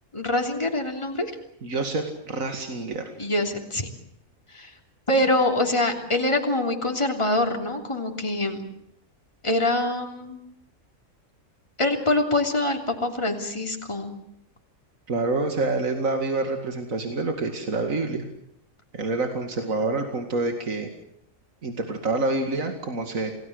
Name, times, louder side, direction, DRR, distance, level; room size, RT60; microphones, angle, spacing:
voice 1, 0.1-1.3 3.2-3.9 4.5-4.7 5.1-8.6 9.4-10.4 11.8-14.1, left 1 dB, 20° left, 2 dB, 3.2 m, -24 dB
voice 2, 1.6-3.1 15.1-18.2 18.9-20.9 21.6-23.3, right 3 dB, 85° right, 5 dB, 2.7 m, -27 dB
29.0 x 18.5 x 8.0 m, 0.76 s
omnidirectional pair, 1.4 m